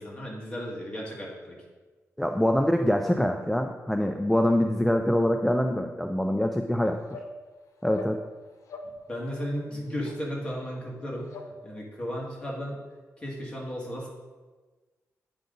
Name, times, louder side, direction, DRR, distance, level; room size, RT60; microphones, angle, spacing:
voice 1, 0.0-1.6 9.1-12.8 13.2-14.1, equal, 20° left, -4 dB, 1.8 m, -35 dB
voice 2, 2.2-7.2 7.8-8.2, left 1 dB, 5° left, 4 dB, 0.3 m, -24 dB
sound 1, 6.5-6.6 7.1-7.3 7.9-8.1 8.6-9.0 9.3-9.5 10.0-10.1 10.7-10.8 11.2-11.5, left 4 dB, 75° left, 0.8 m, -42 dB
8.9 x 5.1 x 3.8 m, 1.3 s
wide cardioid pair, 150°, 5 cm